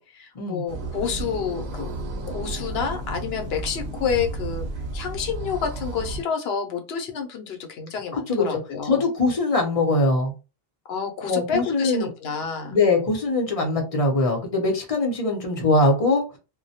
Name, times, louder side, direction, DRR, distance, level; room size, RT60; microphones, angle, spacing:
voice 1, 0.0-1.9 2.3-4.7 4.9-9.0 10.9-12.8, left 6 dB, 75° left, 4 dB, 0.8 m, -29 dB
sound 1, 0.7-6.2, right 2 dB, 75° right, 0.8 m, -32 dB
voice 2, 8.3-10.3 11.2-12.1 12.7-16.2, left 2 dB, 40° left, 2 dB, 0.7 m, -22 dB
2.2 x 2.1 x 2.7 m, 0.30 s
omnidirectional pair, 1.0 m